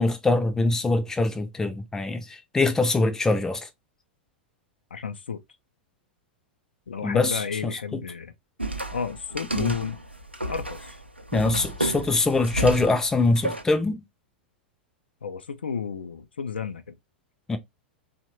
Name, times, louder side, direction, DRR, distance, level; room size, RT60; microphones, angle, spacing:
voice 1, 0.0-3.7 7.0-7.4 9.5-9.7 11.3-14.0 17.5-17.6, left 2 dB, 10° left, 0.4 m, -23 dB
voice 2, 4.9-5.4 6.9-8.3 8.9-10.0 10.4-11.0 11.4-11.7 15.2-17.0, left 6 dB, 70° left, 0.4 m, -32 dB
sound 1, 8.6-13.6, right 1 dB, 90° right, 0.4 m, -32 dB
2.9 x 2.1 x 2.9 m
figure-of-eight pair, 95°, 6 cm